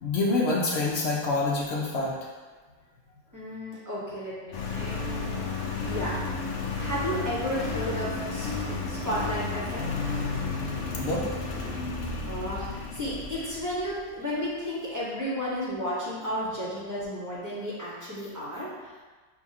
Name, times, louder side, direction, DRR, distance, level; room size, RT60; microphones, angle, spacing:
voice 1, 0.0-2.1 11.0-11.3, left 2 dB, 85° left, -4 dB, 0.5 m, -26 dB
voice 2, 3.3-5.5 5.9-6.2 6.8-11.1 12.3-19.0, equal, 15° right, -8 dB, 0.7 m, -33 dB
Engine, 4.5-14.0, left 3 dB, 65° left, 0.9 m, -33 dB
6.9 x 2.3 x 2.8 m, 1.4 s
omnidirectional pair, 1.9 m